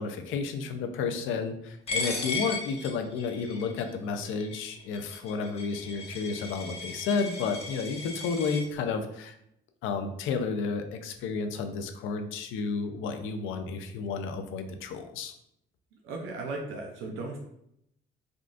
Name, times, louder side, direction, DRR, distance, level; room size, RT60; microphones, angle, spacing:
voice 1, 0.0-9.4 9.8-15.3, left 5 dB, 90° left, 7 dB, 0.4 m, -32 dB
Coin (dropping), 1.9-8.6, left 3 dB, 30° left, 0.8 m, -37 dB
voice 2, 16.0-17.4, right 3 dB, 90° right, 0 dB, 0.6 m, -36 dB
3.6 x 2.4 x 2.4 m, 0.75 s
cardioid pair, 90°, 20 cm